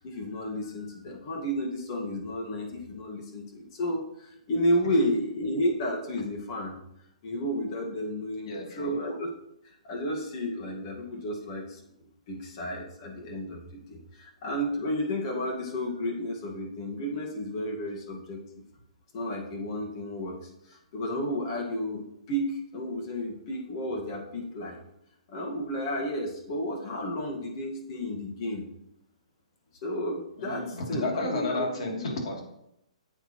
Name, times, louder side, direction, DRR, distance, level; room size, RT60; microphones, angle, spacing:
voice 1, 0.0-6.8 7.2-9.3 9.8-11.8 12.3-18.4 19.1-20.4 20.7-24.8 25.3-28.7 29.8-31.7, equal, 45° left, 1 dB, 1.7 m, -32 dB
voice 2, 8.4-8.9 30.4-32.4, left 2 dB, 60° left, -1 dB, 3.0 m, -32 dB
10.0 x 8.1 x 3.1 m, 0.80 s
hypercardioid pair, 145°, 4 cm